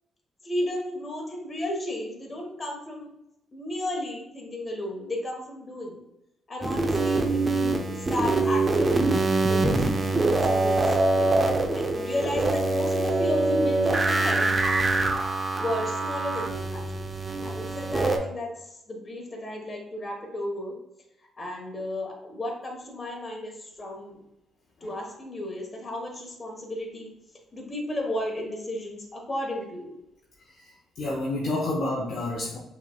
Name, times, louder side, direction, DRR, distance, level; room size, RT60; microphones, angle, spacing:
voice 1, 0.4-3.2 3.5-6.0 6.5-9.1 9.5-11.3 11.7-14.6 15.5-20.8 21.4-24.2 24.8-27.1 27.5-29.9, left 1 dB, 30° left, 0 dB, 1.3 m, -33 dB
sound 1, 6.6-18.2, right 2 dB, 25° right, 0.6 m, -24 dB
voice 2, 30.6-32.6, left 2 dB, 55° left, -2 dB, 0.7 m, -29 dB
5.8 x 3.2 x 2.3 m, 0.84 s
cardioid pair, 90°, 0 cm